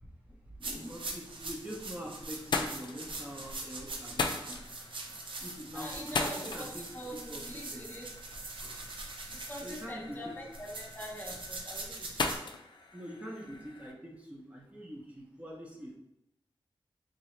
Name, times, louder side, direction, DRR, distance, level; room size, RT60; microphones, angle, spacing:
voice 1, 0.3-1.0 5.7-8.1 8.6-9.0 9.3-12.3, equal, 25° left, -2 dB, 0.7 m, -44 dB
sound 1, 0.6-12.4, right 2 dB, 70° right, 0.6 m, -43 dB
voice 2, 0.8-4.6 5.4-7.9 9.6-10.3 12.9-16.0, equal, 15° right, -2 dB, 0.7 m, -44 dB
sound 2, 1.5-2.0 2.3-13.9, left 3 dB, 60° left, 0.4 m, -40 dB
3.7 x 2.7 x 3.1 m, 0.82 s
wide cardioid pair, 105°, 9 cm